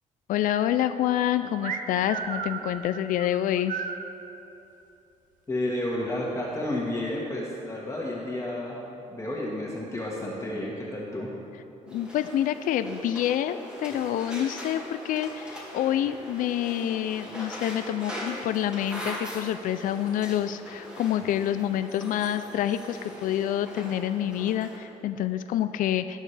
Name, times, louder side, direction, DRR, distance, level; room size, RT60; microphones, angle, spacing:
voice 1, 0.3-3.8 11.9-26.2, left 11 dB, 85° left, 11 dB, 0.4 m, -27 dB
sound 1, 1.6-4.1, right 6 dB, 75° right, 0.8 m, -34 dB
voice 2, 5.5-8.8 9.1-11.3, left 1 dB, 20° left, -4 dB, 1.6 m, -31 dB
sound 2, 11.9-24.8, equal, 5° right, 2.1 m, -41 dB
19.0 x 6.5 x 3.3 m, 2.9 s
cardioid pair, 115°, 14 cm